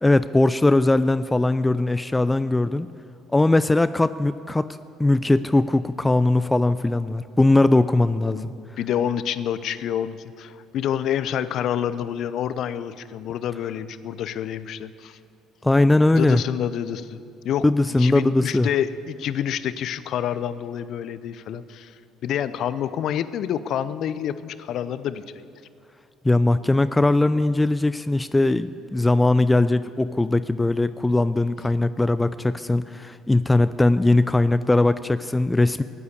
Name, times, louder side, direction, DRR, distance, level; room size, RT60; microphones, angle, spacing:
voice 1, 0.0-2.9 3.3-4.7 5.0-8.5 15.6-16.4 17.6-18.7 26.2-35.8, left 2 dB, 15° left, 13 dB, 0.5 m, -20 dB
voice 2, 8.3-15.2 16.1-17.2 17.4-17.6 18.0-22.0 22.2-25.4, left 9 dB, 60° left, 14 dB, 0.6 m, -28 dB
15.5 x 9.4 x 8.3 m, 2.4 s
hypercardioid pair, 55°, 0 cm